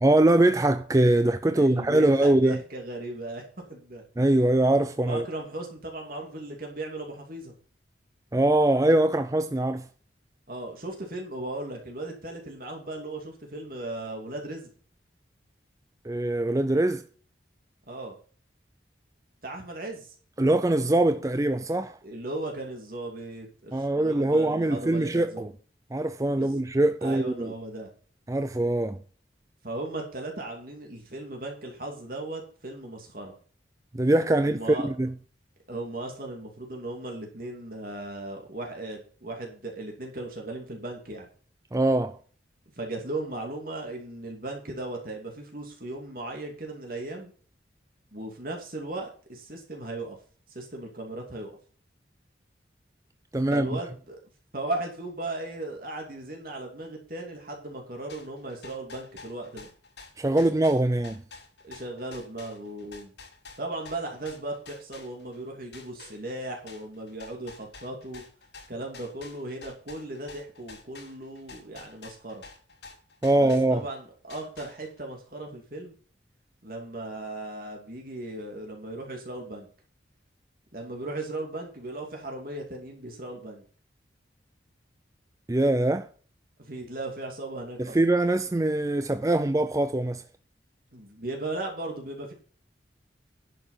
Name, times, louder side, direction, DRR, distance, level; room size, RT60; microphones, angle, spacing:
voice 1, 0.0-2.6 4.2-5.3 8.3-9.9 16.0-17.0 20.4-22.0 23.7-25.5 25.9-27.5 28.3-29.0 33.9-35.1 41.7-42.2 53.3-53.8 60.2-61.2 73.2-73.8 85.5-86.1 87.8-90.2, right 1 dB, 15° right, 0.4 m, -23 dB
voice 2, 1.5-4.0 5.0-7.5 10.5-14.7 17.9-18.1 19.4-20.1 22.0-25.4 26.3-26.6 27.0-27.9 29.6-33.3 34.4-34.9 35.7-41.3 42.8-47.3 48.1-50.2 50.5-51.6 53.5-54.2 54.5-59.7 61.6-63.1 63.6-68.2 68.7-72.4 73.4-75.9 76.6-79.7 80.7-83.6 86.6-88.0 90.9-92.3, right 2 dB, 50° right, 2.8 m, -37 dB
sound 1, 58.1-65.4 65.7-74.0 74.3-75.1, left 4 dB, 70° left, 6.2 m, -48 dB
11.0 x 7.0 x 5.7 m
head